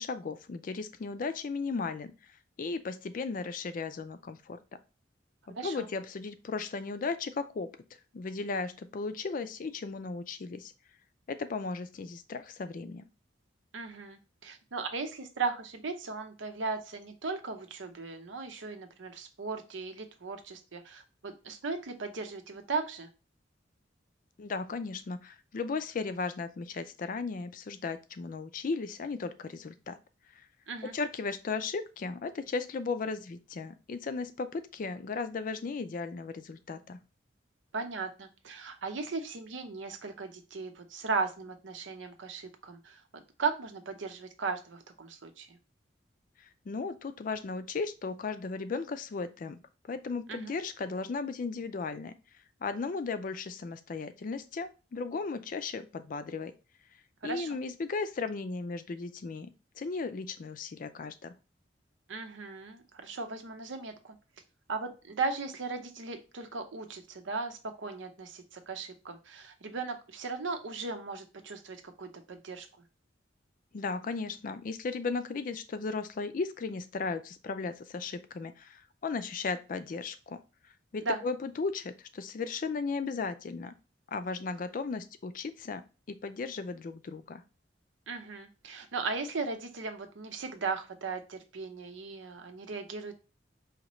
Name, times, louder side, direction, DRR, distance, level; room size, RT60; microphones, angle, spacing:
voice 1, 0.0-2.1 2.6-4.6 5.5-7.7 8.1-10.7 11.3-13.0 24.4-30.0 30.3-30.5 30.8-37.0 46.4-49.6 49.9-52.1 52.6-56.5 57.2-59.5 59.8-61.3 73.7-80.4 80.9-83.7 84.1-85.8 86.1-87.4, left 4 dB, 45° left, 11 dB, 0.4 m, -36 dB
voice 2, 5.5-5.9 13.7-23.1 30.7-30.9 37.7-45.6 50.3-50.5 57.2-57.6 62.1-64.2 64.7-72.7 81.0-81.2 88.1-93.1, right 4 dB, 90° right, 6 dB, 0.7 m, -37 dB
5.0 x 2.8 x 3.1 m, 0.31 s
head